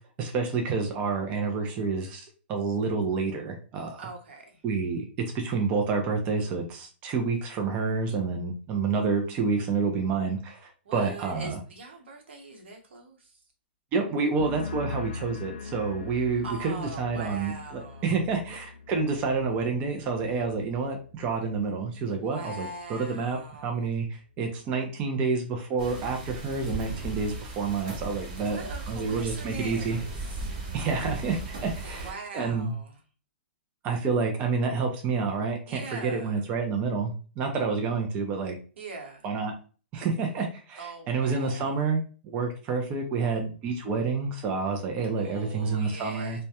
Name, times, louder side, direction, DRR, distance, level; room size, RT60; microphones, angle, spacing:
voice 1, 0.2-4.0 4.6-5.0 5.3-11.6 13.9-28.6 28.9-30.0 30.7-32.7 33.8-38.6 39.2-39.5 39.9-46.4, right 4 dB, 20° right, 3 dB, 0.3 m, -29 dB
voice 2, 4.0-4.6 10.8-13.4 16.4-18.1 22.1-23.9 28.4-30.5 31.8-33.0 35.7-36.4 38.8-39.3 40.8-41.8 45.2-46.4, right 3 dB, 75° right, 1 dB, 0.9 m, -42 dB
sound 1, 14.4-21.9 22.1-22.7, left 5 dB, 65° left, 0.4 m, -41 dB
sound 2, 25.8-32.1, right 2 dB, 40° right, 0.8 m, -37 dB
2.2 x 2.1 x 2.8 m, 0.38 s
hypercardioid pair, 155°, 6 cm